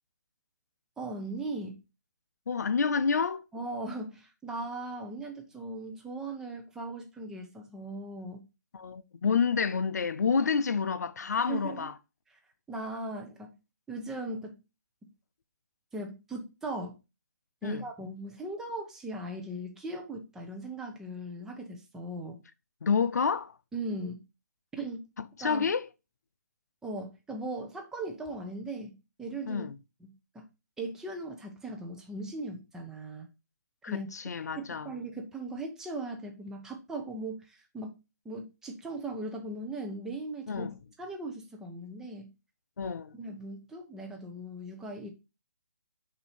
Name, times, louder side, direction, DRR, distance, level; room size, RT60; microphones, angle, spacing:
voice 1, 1.0-1.8 3.5-8.4 11.5-11.9 12.3-12.4 12.7-13.6 13.9-14.6 15.0-15.1 15.9-17.0 17.6-22.4 23.7-24.2 24.8-25.1 25.4-25.7 26.8-29.6 30.0-30.5 30.8-33.3 33.9-34.1 34.6-38.0 38.2-40.6 41.0-42.3 43.1-45.1, right 2 dB, 5° right, 0.6 m, -38 dB
voice 2, 2.5-3.4 8.7-11.9 17.6-17.8 22.8-23.5 25.4-25.9 29.5-29.8 33.8-34.9 40.5-40.7 42.8-43.1, left 5 dB, 70° left, 0.4 m, -29 dB
5.8 x 2.7 x 3.3 m
hypercardioid pair, 150°, 9 cm